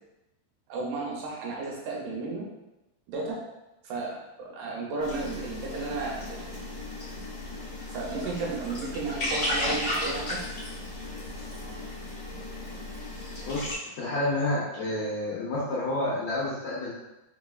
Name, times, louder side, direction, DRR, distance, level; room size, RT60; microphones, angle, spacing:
voice 1, 0.7-2.5 3.1-3.4 3.8-6.6 7.9-10.4, right 3 dB, 75° right, -2 dB, 2.2 m, -33 dB
sound 1, 5.0-13.8, left 1 dB, 60° left, 0.7 m, -34 dB
voice 2, 13.4-16.9, left 1 dB, 80° left, -7 dB, 1.6 m, -29 dB
4.3 x 4.1 x 2.3 m, 0.96 s
omnidirectional pair, 4.1 m